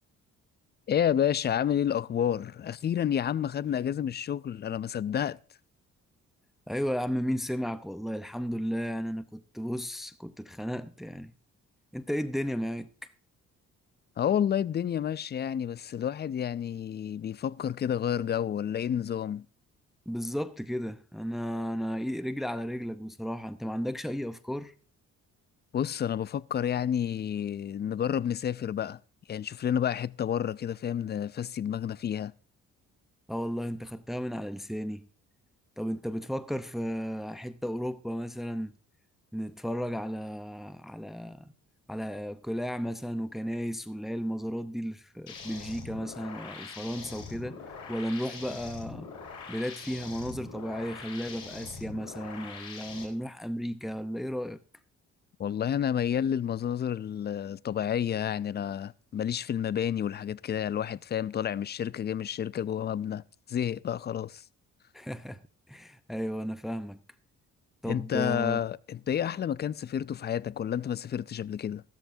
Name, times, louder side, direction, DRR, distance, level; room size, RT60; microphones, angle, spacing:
voice 1, 0.9-5.4 14.2-19.5 25.7-29.0 29.3-32.3 55.4-63.2 63.5-64.4 67.8-71.8, left 9 dB, 35° left, 0.4 m, -30 dB
voice 2, 6.7-11.3 11.9-13.1 20.1-24.7 33.3-35.1 35.8-38.7 39.3-41.5 41.9-47.6 47.9-49.1 49.5-54.6 64.9-65.4 65.7-67.0 67.8-68.6, equal, ahead, 0.7 m, -34 dB
sound 1, 45.3-53.0, left 5 dB, 90° left, 4.2 m, -43 dB
14.0 x 13.5 x 2.7 m
cardioid pair, 90°, 30 cm